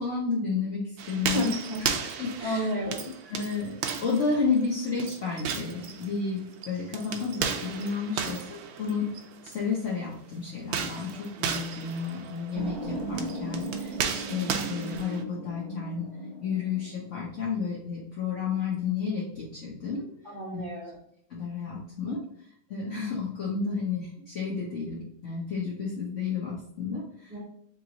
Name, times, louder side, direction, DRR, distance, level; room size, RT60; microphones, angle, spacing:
voice 1, 0.0-1.5 1.8-2.7 3.3-3.7 4.0-9.1 9.4-16.1 16.4-20.1 20.5-20.6 21.3-22.2 22.7-27.3, left 5 dB, 50° left, -5 dB, 0.9 m, -31 dB
sound 1, 1.0-9.6 10.6-15.2, right 7 dB, 80° right, 1.4 m, -35 dB
voice 2, 1.3-1.8 2.4-3.1 20.2-21.0 27.3-27.4, equal, 10° right, -7 dB, 1.2 m, -31 dB
sound 2, 12.5-17.5, right 2 dB, 50° right, 1.5 m, -37 dB
3.7 x 3.1 x 3.9 m, 0.71 s
omnidirectional pair, 2.3 m